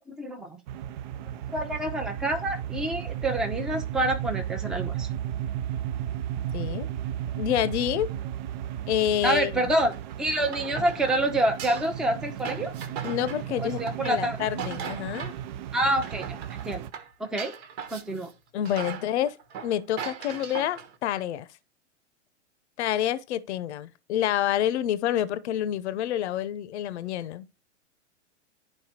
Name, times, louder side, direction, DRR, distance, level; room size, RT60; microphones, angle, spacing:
voice 1, 0.1-0.6 1.5-5.1 9.2-9.9 10.2-12.7 13.6-14.4 15.7-16.4 16.6-16.8 17.2-17.5 17.9-18.3, right 1 dB, ahead, 0.7 m, -27 dB
sound 1, 0.7-16.9, right 10 dB, 40° right, 0.4 m, -34 dB
voice 2, 6.5-6.9 7.3-8.1 8.9-9.7 13.0-15.3 18.5-19.4 19.6-21.5 22.8-27.5, left 11 dB, 65° left, 0.7 m, -28 dB
sound 2, 9.9-15.5 15.8-18.3 18.7-21.0, right 7 dB, 60° right, 1.4 m, -39 dB
11.0 x 4.5 x 2.8 m
hypercardioid pair, 115°, 37 cm